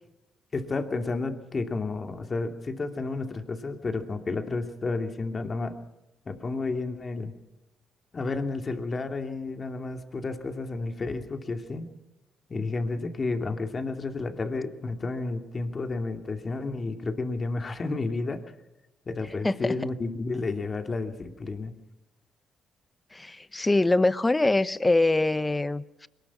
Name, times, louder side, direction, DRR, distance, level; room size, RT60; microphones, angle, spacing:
voice 1, 0.5-5.7 6.3-7.3 8.1-11.9 12.5-18.4 19.1-21.7, left 3 dB, 35° left, 6 dB, 2.5 m, -31 dB
voice 2, 19.4-19.7 23.1-26.1, left 2 dB, 15° left, 16 dB, 0.8 m, -24 dB
22.0 x 20.0 x 6.1 m, 0.97 s
cardioid pair, 90°, 0 cm